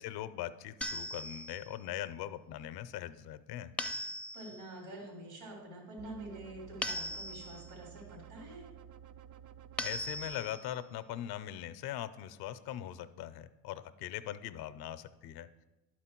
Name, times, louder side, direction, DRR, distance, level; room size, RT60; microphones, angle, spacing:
voice 1, 0.0-3.7 9.8-15.5, left 12 dB, 65° left, 13 dB, 0.6 m, -41 dB
sound 1, 0.8-1.7 3.8-4.6 6.8-7.7 9.8-10.7, left 1 dB, 5° left, 0.5 m, -39 dB
voice 2, 4.3-8.6, right 1 dB, 75° right, -1 dB, 3.2 m, -47 dB
sound 2, 6.0-10.4, right 9 dB, 50° right, 0.5 m, -52 dB
11.0 x 4.4 x 4.4 m, 1.1 s
supercardioid pair, 85°, 40 cm